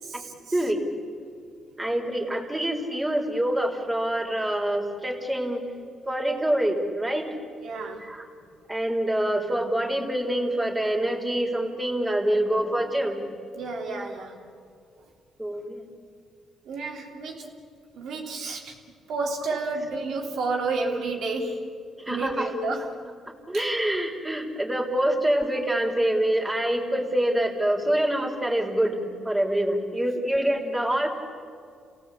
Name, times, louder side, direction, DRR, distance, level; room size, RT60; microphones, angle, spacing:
voice 1, 0.0-0.3 7.6-8.0 13.5-14.4 16.7-17.5 17.9-21.6 22.1-23.0 23.5-23.7, right 3 dB, 75° right, 1 dB, 3.3 m, -31 dB
voice 2, 0.5-0.9 1.8-5.6 6.1-7.3 8.0-8.3 8.7-13.2 13.9-14.1 15.4-15.8 22.0-22.5 23.5-29.0 29.2-31.1, right 1 dB, 15° right, 1 dB, 3.9 m, -26 dB
28.5 x 17.5 x 8.5 m, 2.3 s
cardioid pair, 90°, 0 cm